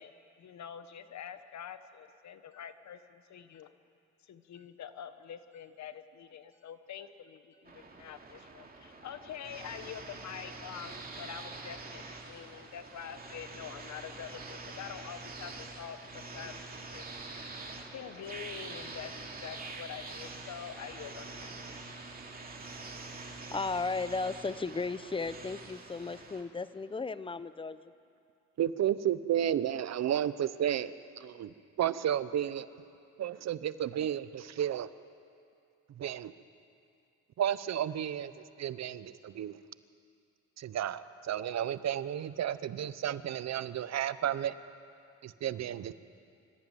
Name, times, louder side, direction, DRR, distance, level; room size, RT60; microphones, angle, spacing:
voice 1, 0.0-3.7 4.2-17.3 17.9-21.5, left 8 dB, 65° left, 10 dB, 1.3 m, -46 dB
sound 1, 7.7-26.4, right 3 dB, 30° right, 2.6 m, -45 dB
voice 2, 23.5-27.9, left 4 dB, 15° left, 14 dB, 0.8 m, -35 dB
voice 3, 28.6-32.7 33.2-34.9 36.0-36.3 37.4-39.6 40.6-44.6 45.2-45.9, right 10 dB, 60° right, 15 dB, 0.8 m, -32 dB
25.0 x 14.5 x 9.3 m, 2.4 s
cardioid pair, 90°, 30 cm